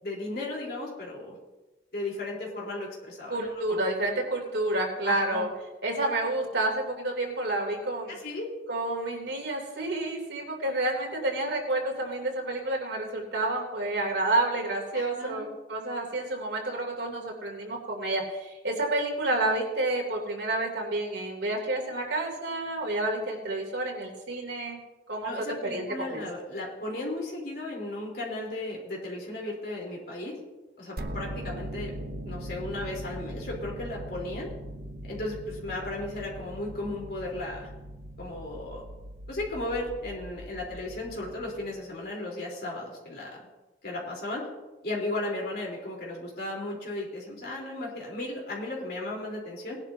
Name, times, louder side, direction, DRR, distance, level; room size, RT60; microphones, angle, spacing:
voice 1, 0.0-1.4 1.9-3.8 5.0-5.5 8.1-8.5 14.9-15.5 25.2-30.4 30.8-31.9 32.3-34.5 35.1-37.7 38.2-38.8 39.3-43.4 43.8-44.5 44.8-49.8, left 2 dB, 60° left, -3 dB, 4.0 m, -35 dB
voice 2, 3.3-5.5 5.8-8.1 8.7-24.8 25.1-25.3 25.7-26.2, right 2 dB, 90° right, 0 dB, 3.2 m, -29 dB
sound 1, 31.0-41.9, right 1 dB, 60° right, 0.9 m, -40 dB
19.5 x 11.0 x 2.8 m, 1.1 s
head